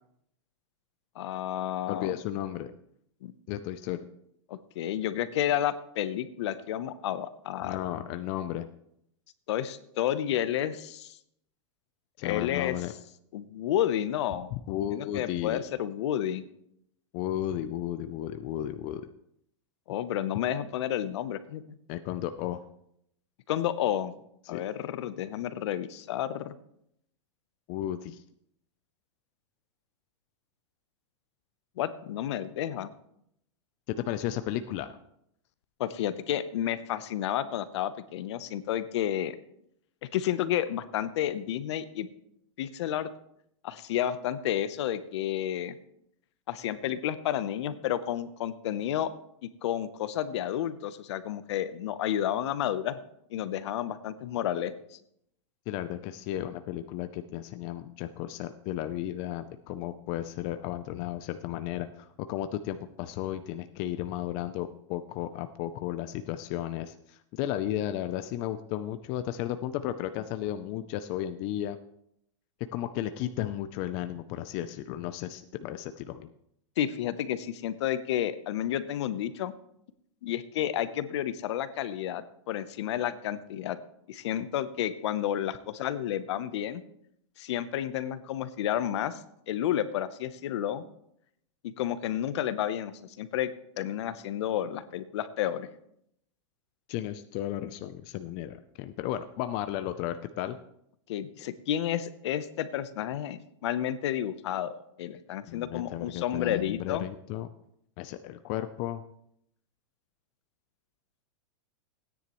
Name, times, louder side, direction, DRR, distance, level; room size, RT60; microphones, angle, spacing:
voice 1, 1.2-2.2 3.2-3.3 4.5-7.8 9.5-11.2 12.2-12.8 13.3-14.5 14.9-16.4 19.9-21.6 23.5-24.1 24.5-26.5 31.8-32.9 35.8-39.3 40.1-42.1 42.6-43.1 43.6-45.8 46.5-49.1 49.6-53.0 53.3-55.0 76.8-79.5 80.2-83.8 84.1-86.8 87.4-89.2 89.5-90.9 91.6-93.5 93.8-95.7 101.1-104.7 105.0-107.1, left 11 dB, 65° left, 14 dB, 0.8 m, -31 dB
voice 2, 1.9-2.7 3.5-4.0 7.6-8.7 12.2-12.9 14.5-15.6 17.1-19.0 21.9-22.6 24.5-24.6 27.7-28.2 33.9-34.9 55.7-71.8 72.7-76.3 96.9-100.6 105.5-107.5 108.0-109.0, left 12 dB, 35° left, 10 dB, 0.5 m, -34 dB
16.5 x 9.8 x 3.1 m, 0.74 s
supercardioid pair, 150°, 16 cm